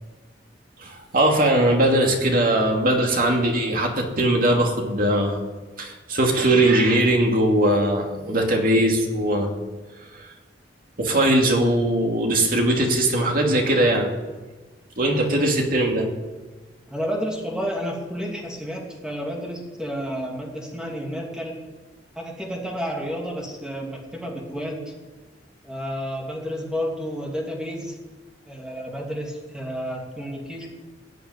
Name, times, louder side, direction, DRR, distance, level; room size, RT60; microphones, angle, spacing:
voice 1, 0.8-5.4 5.8-9.5 11.0-14.1 15.0-16.1, right 1 dB, 50° right, 1 dB, 2.6 m, -20 dB
voice 2, 15.0-15.3 16.9-21.5 22.1-24.9 25.6-27.9 28.5-30.7, equal, 5° right, -1 dB, 2.8 m, -31 dB
17.5 x 6.7 x 9.6 m, 1.2 s
head